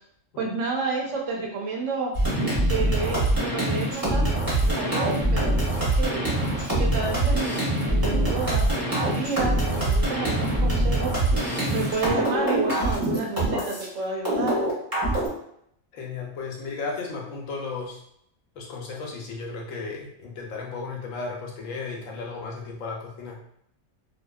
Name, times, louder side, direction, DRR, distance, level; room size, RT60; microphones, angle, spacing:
voice 1, 0.4-2.1 2.7-6.2 6.8-11.1 11.7-14.6, right 3 dB, 75° right, -1 dB, 1.0 m, -30 dB
sound 1, 2.1-13.9 14.3-15.3, right 1 dB, 20° right, 0.7 m, -24 dB
voice 2, 15.9-18.0 18.6-23.4, left 4 dB, 90° left, -1 dB, 1.0 m, -34 dB
2.7 x 2.3 x 2.2 m, 0.72 s
omnidirectional pair, 1.3 m